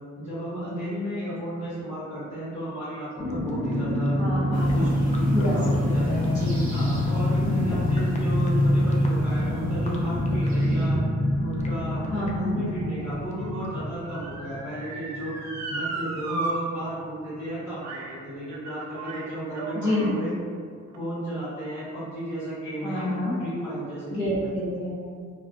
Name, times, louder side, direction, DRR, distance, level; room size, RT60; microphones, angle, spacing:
voice 1, 0.2-4.2 4.5-6.1 6.7-11.0 11.4-15.3 15.7-20.3 20.9-24.5, equal, 45° left, -11 dB, 1.1 m, -34 dB
sound 1, 3.2-15.5 15.8-15.9 16.2-16.5, left 1 dB, 25° left, 0.3 m, -25 dB
voice 2, 4.2-5.0 5.3-6.7 7.5-7.9 12.1-12.6 19.7-20.2 22.8-23.3 24.1-24.9, left 1 dB, 75° left, -11 dB, 1.0 m, -28 dB
sound 2, 4.5-10.9, right 1 dB, 30° right, 0.7 m, -39 dB
Motor vehicle (road) / Siren, 11.3-16.5 16.9-17.0 17.8-18.2 18.5-20.2 20.9-21.0, right 3 dB, 65° right, 0.5 m, -36 dB
2.3 x 2.3 x 2.5 m, 2.1 s
cardioid pair, 90°, 30 cm